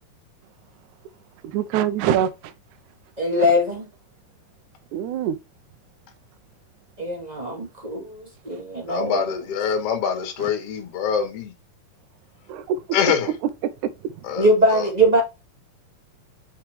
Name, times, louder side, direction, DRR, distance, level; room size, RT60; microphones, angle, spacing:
voice 1, 1.4-2.5 3.4-3.5 4.9-5.4 10.4-10.5 12.5-12.8 13.6-14.1, right 9 dB, 80° right, 1.8 m, -25 dB
voice 2, 3.2-3.9 7.0-9.2 14.4-15.2, equal, 15° right, 2.1 m, -21 dB
voice 3, 8.9-11.5 12.9-13.3 14.2-14.9, left 7 dB, 50° left, 2.1 m, -25 dB
5.9 x 5.7 x 3.5 m
omnidirectional pair, 4.4 m